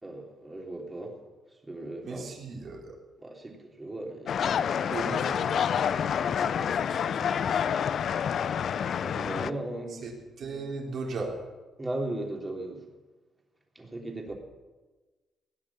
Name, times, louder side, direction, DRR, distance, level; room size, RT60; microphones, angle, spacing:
voice 1, 0.0-1.2 1.5-2.3 3.2-4.4 9.0-10.0 11.8-12.9 13.7-14.3, right 1 dB, 20° right, 1 dB, 3.3 m, -37 dB
voice 2, 2.0-2.9 4.9-7.9 9.9-10.1 10.4-11.4, right 3 dB, 60° right, -1 dB, 4.2 m, -38 dB
sound 1, 4.3-9.5, left 8 dB, 60° left, 0.5 m, -28 dB
17.0 x 9.9 x 7.2 m, 1.2 s
cardioid pair, 90°, 0 cm